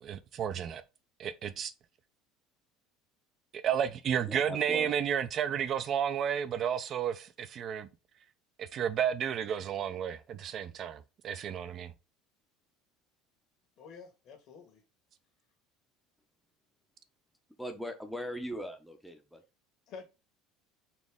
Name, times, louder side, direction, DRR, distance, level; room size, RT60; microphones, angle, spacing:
voice 1, 0.0-0.8 1.2-1.7 3.5-7.9 8.6-11.9, right 8 dB, 45° right, 0.4 m, -32 dB
voice 2, 4.2-4.9 17.6-19.4, equal, ahead, 0.7 m, -40 dB
voice 3, 13.8-14.8 19.9-20.1, left 5 dB, 55° left, 1.5 m, -49 dB
4.2 x 3.0 x 3.5 m
supercardioid pair, 115°, 0 cm